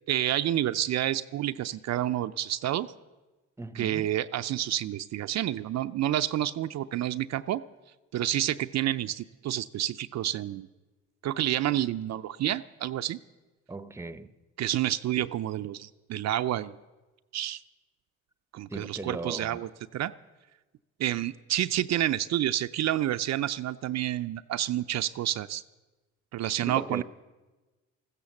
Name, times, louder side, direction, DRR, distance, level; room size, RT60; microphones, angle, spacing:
voice 1, 0.1-2.9 3.7-7.6 8.1-10.7 11.2-13.2 14.6-16.7 17.3-17.6 18.5-20.1 21.0-25.6 26.3-27.0, right 12 dB, 60° right, 0.5 m, -29 dB
voice 2, 3.6-4.1 13.7-14.3 18.7-19.6 26.7-27.0, right 2 dB, 10° right, 0.7 m, -38 dB
15.0 x 13.5 x 7.1 m
cardioid pair, 90°, 30 cm